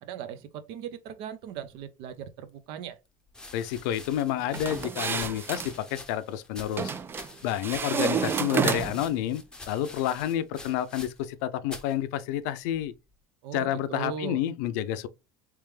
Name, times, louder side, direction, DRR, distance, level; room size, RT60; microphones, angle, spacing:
voice 1, 0.0-3.0 13.4-14.4, right 8 dB, 65° right, 0.6 m, -38 dB
sound 1, 3.3-11.4 11.6-12.0 12.7-13.1, left 2 dB, 10° left, 0.7 m, -46 dB
voice 2, 3.5-6.9 7.4-12.9 13.5-15.1, left 11 dB, 80° left, 0.5 m, -29 dB
sound 2, 4.5-5.7 6.8-7.3 7.6-9.1, right 6 dB, 25° right, 0.4 m, -29 dB
3.4 x 3.3 x 3.3 m
supercardioid pair, 110°, 9 cm